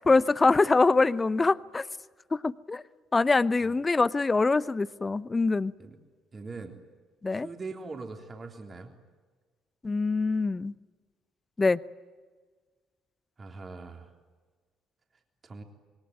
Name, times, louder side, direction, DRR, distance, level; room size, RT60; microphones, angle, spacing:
voice 1, 0.0-1.9 2.3-2.8 3.1-5.7 7.2-7.5 9.8-10.7 11.6-11.8, left 3 dB, 20° left, 20 dB, 0.7 m, -24 dB
voice 2, 6.3-6.8 7.3-8.9 13.4-14.1 15.4-15.6, right 3 dB, 30° right, 4 dB, 3.4 m, -41 dB
26.5 x 22.5 x 9.5 m, 1.4 s
figure-of-eight pair, 50°, 0 cm